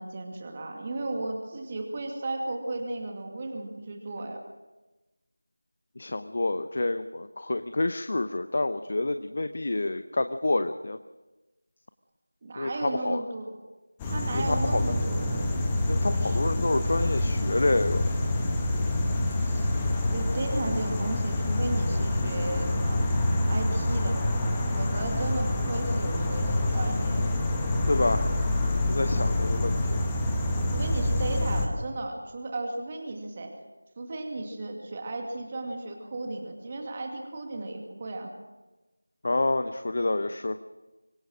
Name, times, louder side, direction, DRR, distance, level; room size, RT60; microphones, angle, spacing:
voice 1, 0.0-4.4 12.4-13.6 14.0-15.5 16.1-16.5 19.3-19.7 20.1-23.0 23.5-24.2 24.7-27.3 29.2-29.5 30.7-33.5 34.0-38.3, right 2 dB, 20° right, 3 dB, 2.3 m, -35 dB
voice 2, 6.0-11.0 12.6-13.2 14.3-14.8 15.9-18.1 27.9-28.3 28.8-30.0 39.2-40.6, left 2 dB, 40° left, 10 dB, 0.8 m, -28 dB
sound 1, 14.0-31.7, left 1 dB, 10° left, 1.4 m, -27 dB
sound 2, 15.4-20.5, equal, 80° left, 1.7 m, -33 dB
25.0 x 21.5 x 6.3 m, 1.1 s
figure-of-eight pair, 170°, 0 cm